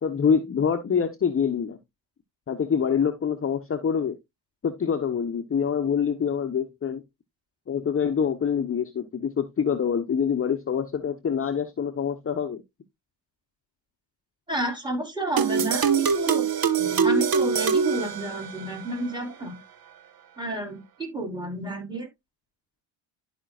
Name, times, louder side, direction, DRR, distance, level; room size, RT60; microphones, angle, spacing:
voice 1, 0.0-1.8 2.5-4.2 4.6-7.0 7.7-12.6, left 7 dB, 25° left, 0.9 m, -25 dB
voice 2, 14.5-16.5 16.8-19.6 20.4-22.1, right 2 dB, 10° right, 4.0 m, -30 dB
sound 1, 15.4-18.8, right 6 dB, 45° right, 1.2 m, -23 dB
11.5 x 5.2 x 2.4 m
cardioid pair, 85°, 48 cm